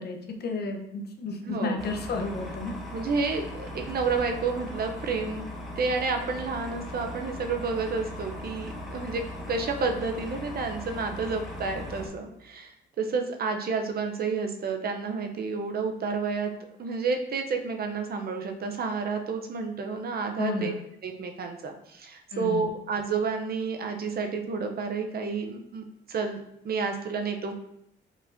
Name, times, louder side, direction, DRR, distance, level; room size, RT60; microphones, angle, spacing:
voice 1, 0.0-2.7 20.4-20.8 22.3-22.7, left 3 dB, 55° left, 3 dB, 0.8 m, -32 dB
voice 2, 1.4-1.8 2.9-5.4 5.8-9.2 9.5-16.5 16.8-20.7 21.0-27.5, right 4 dB, 50° right, 5 dB, 0.6 m, -30 dB
sound 1, 1.8-12.1, left 1 dB, ahead, 1.1 m, -39 dB
5.1 x 3.9 x 2.6 m, 0.78 s
cardioid pair, 90°, 20 cm